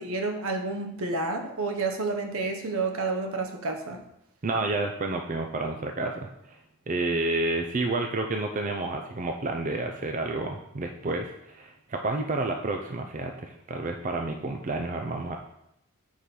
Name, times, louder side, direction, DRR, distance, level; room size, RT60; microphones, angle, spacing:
voice 1, 0.0-4.0, right 3 dB, 70° right, 3 dB, 0.9 m, -30 dB
voice 2, 4.4-6.6 6.9-15.4, right 2 dB, 35° right, 4 dB, 0.4 m, -30 dB
4.8 x 4.4 x 5.2 m, 0.81 s
head